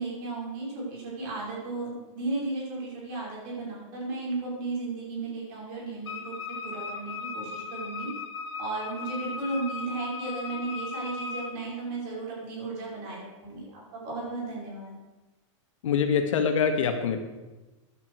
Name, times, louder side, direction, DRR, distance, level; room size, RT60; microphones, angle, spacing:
voice 1, 0.0-6.3 6.6-8.1 8.6-15.0, right 3 dB, 30° right, -4 dB, 5.4 m, -34 dB
Wind instrument woodwind instrument, 6.0-11.5, left 4 dB, 55° left, 2.2 m, -37 dB
voice 2, 15.8-17.2, left 6 dB, 70° left, 6 dB, 1.9 m, -24 dB
14.5 x 10.5 x 4.7 m, 1.1 s
supercardioid pair, 170°, 17 cm